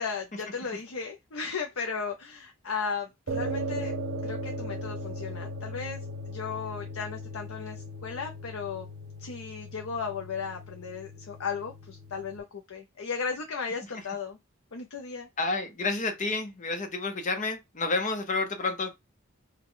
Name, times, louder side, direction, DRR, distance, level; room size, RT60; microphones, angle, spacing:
voice 1, 0.0-3.9 4.2-6.0 6.3-8.9 9.2-14.4 14.7-15.3, left 5 dB, 75° left, 0.6 m, -35 dB
sound 1, 3.3-12.4, equal, 65° right, 1.0 m, -37 dB
voice 2, 15.4-18.9, left 3 dB, 35° left, 0.7 m, -30 dB
4.9 x 2.2 x 3.7 m
head